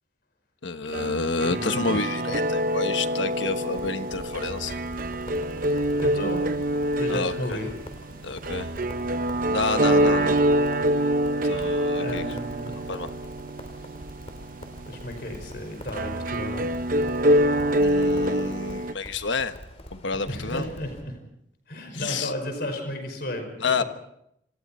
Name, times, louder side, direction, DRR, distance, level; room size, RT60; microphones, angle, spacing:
voice 1, 0.6-4.8 7.1-7.6 8.2-8.7 9.5-10.4 11.4-12.2 12.9-13.1 17.8-19.6 19.9-20.7 21.9-22.3 23.6-23.8, left 4 dB, 75° left, 9 dB, 1.3 m, -29 dB
sound 1, 0.9-18.9, right 1 dB, 45° right, 0.8 m, -26 dB
voice 2, 1.5-2.4 6.0-6.4 7.0-7.7 12.0-12.7 14.9-16.7 20.3-21.2 21.7-23.8, left 1 dB, 55° left, 5 dB, 5.3 m, -33 dB
Crackle, 3.7-21.0, left 1 dB, 35° left, 3.1 m, -44 dB
27.0 x 27.0 x 4.4 m, 0.76 s
head